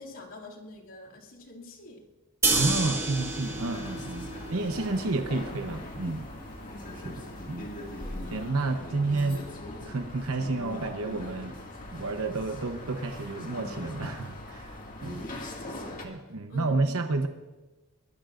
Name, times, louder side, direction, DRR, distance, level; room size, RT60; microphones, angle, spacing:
voice 1, 0.0-2.1 8.0-8.4 15.4-16.2 16.5-16.9, left 2 dB, 70° left, -3 dB, 2.6 m, -47 dB
sound 1, 2.4-8.5, right 3 dB, 10° right, 1.8 m, -32 dB
voice 2, 2.5-6.2 6.9-7.7 8.3-9.5 9.8-11.6 11.9-14.8 15.0-15.3 16.0-17.3, right 3 dB, 75° right, 6 dB, 0.9 m, -30 dB
sound 2, 3.1-16.1, left 1 dB, 40° left, 2.1 m, -41 dB
23.0 x 20.5 x 2.6 m, 1.1 s
head